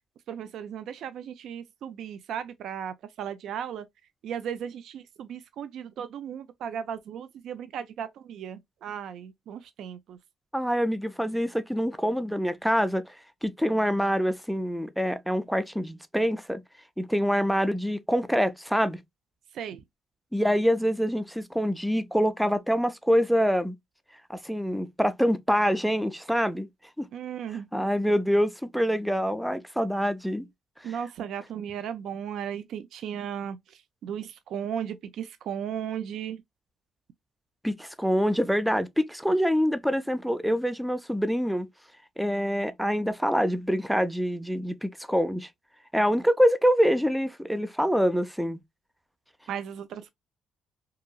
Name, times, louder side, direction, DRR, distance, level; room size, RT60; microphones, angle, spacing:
voice 1, 0.3-3.9 4.2-10.2 19.5-19.8 27.1-27.9 30.8-33.6 34.0-36.4 49.5-50.1, right 8 dB, 75° right, 0.3 m, -36 dB
voice 2, 10.5-13.1 13.4-16.6 17.0-19.0 20.3-23.7 24.3-26.7 27.0-27.1 27.7-30.5 30.8-31.0 37.6-41.7 42.2-45.5 45.9-48.6, equal, ahead, 0.4 m, -25 dB
2.7 x 2.6 x 2.2 m
cardioid pair, 90°, 0 cm